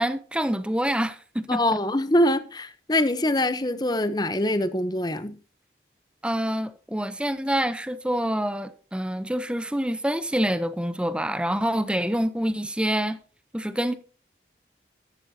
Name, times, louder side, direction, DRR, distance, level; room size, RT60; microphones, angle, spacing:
voice 1, 0.0-1.8 6.2-13.2 13.5-13.9, equal, 5° right, 0.6 m, -26 dB
voice 2, 1.5-5.3, left 1 dB, 25° left, 0.8 m, -24 dB
14.0 x 12.5 x 2.8 m
head